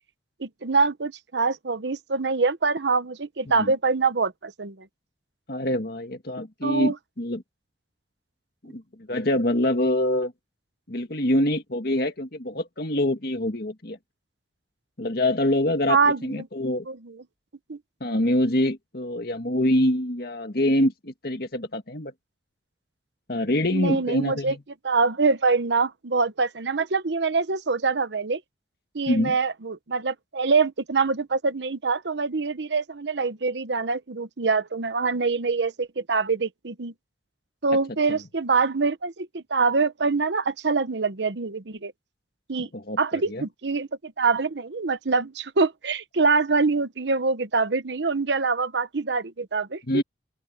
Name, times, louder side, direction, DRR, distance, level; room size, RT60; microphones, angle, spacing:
voice 1, 0.4-4.9 6.6-6.9 15.9-16.5 16.9-17.2 17.7-17.8 23.7-24.5 24.8-28.4 28.9-36.9 37.6-41.9 42.5-42.7 43.0-49.8, right 4 dB, 80° right, 0.9 m, -24 dB
voice 2, 5.5-7.4 8.6-8.8 9.1-10.3 10.9-14.0 15.0-16.0 16.2-16.9 18.0-22.1 23.3-24.6 29.1-29.3 38.1-38.2 42.7-43.5 49.9-50.0, left 1 dB, 60° left, 1.9 m, -25 dB
open air
head